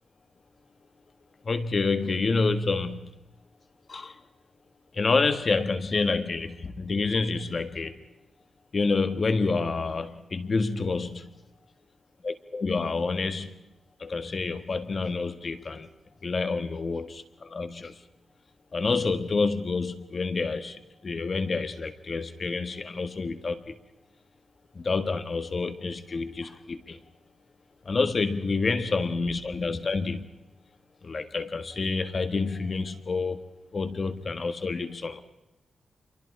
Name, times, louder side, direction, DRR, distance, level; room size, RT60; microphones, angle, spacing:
voice 1, 1.4-3.1 3.9-4.2 4.9-8.0 8.7-11.3 12.2-13.5 14.0-15.9 16.2-18.0 18.7-23.7 24.7-27.0 27.8-30.3 31.0-33.4 33.7-35.2, left 4 dB, 45° left, 9 dB, 1.5 m, -28 dB
30.0 x 23.5 x 4.8 m, 0.94 s
wide cardioid pair, 120°, 0 cm